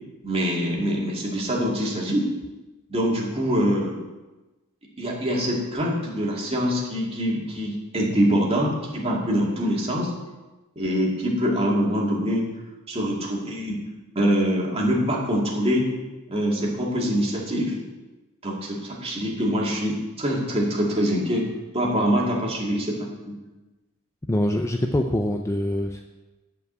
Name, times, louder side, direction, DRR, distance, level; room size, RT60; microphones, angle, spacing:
voice 1, 0.2-2.3 2.9-4.0 5.0-10.1 10.8-12.4 12.9-13.8 14.1-15.9 16.3-17.8 18.4-21.4 21.7-23.4, equal, 30° right, -3 dB, 2.4 m, -24 dB
voice 2, 24.3-26.0, left 1 dB, 15° left, 4 dB, 0.5 m, -24 dB
9.5 x 5.4 x 7.9 m, 1.1 s
head